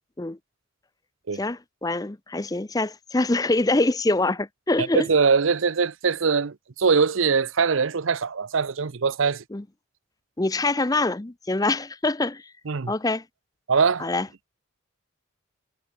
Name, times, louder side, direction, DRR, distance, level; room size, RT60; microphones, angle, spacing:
voice 1, 1.3-5.1 9.5-9.6 10.4-12.4 12.9-13.2 14.0-14.3, left 2 dB, 15° left, 0.5 m, -24 dB
voice 2, 4.8-9.4 12.7-12.9 13.7-14.1, right 5 dB, 70° right, 0.7 m, -22 dB
head